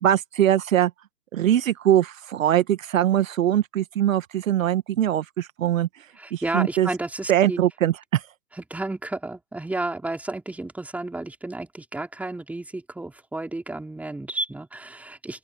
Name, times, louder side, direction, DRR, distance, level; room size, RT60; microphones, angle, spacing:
voice 1, 0.0-0.9 1.3-6.0 6.3-6.9 7.3-8.2, right 11 dB, 55° right, 1.5 m, -22 dB
voice 2, 6.2-7.6 8.5-15.4, right 2 dB, 5° right, 3.8 m, -32 dB
open air
hypercardioid pair, 140°, 48 cm